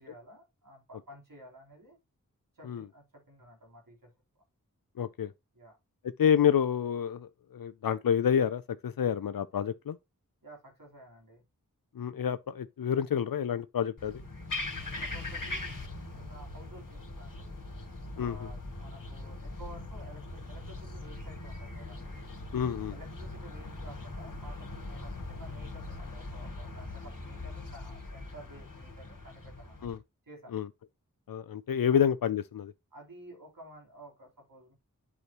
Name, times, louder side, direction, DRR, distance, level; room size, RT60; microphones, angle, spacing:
voice 1, 0.0-2.0 2.5-4.1 5.5-5.8 10.4-11.4 15.0-15.9 16.2-17.6 18.1-22.1 22.9-29.9 30.2-30.6 31.9-32.0 32.9-34.7, right 1 dB, 80° right, 3.8 m, -52 dB
voice 2, 5.0-5.3 6.2-10.0 12.0-14.2 18.2-18.4 22.5-23.0 29.8-30.0 30.5-30.7 31.3-32.7, left 8 dB, 85° left, 0.5 m, -28 dB
sound 1, 14.0-30.0, left 2 dB, 65° left, 2.3 m, -41 dB
8.2 x 6.1 x 3.0 m
wide cardioid pair, 45°, 33 cm